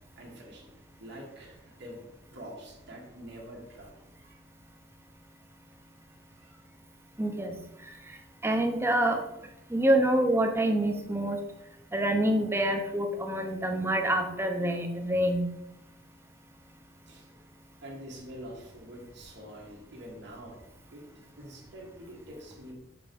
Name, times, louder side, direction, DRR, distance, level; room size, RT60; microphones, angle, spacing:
voice 1, 0.2-0.6 1.0-2.0 2.3-4.4 6.3-6.6 17.1-17.3 17.8-20.6 20.9-21.0 21.4-22.7, equal, 60° right, -2 dB, 1.7 m, -46 dB
voice 2, 7.2-7.5 8.4-9.2 9.7-11.4 11.9-15.5, right 1 dB, 15° right, 4 dB, 0.9 m, -26 dB
6.9 x 4.4 x 5.3 m, 0.87 s
head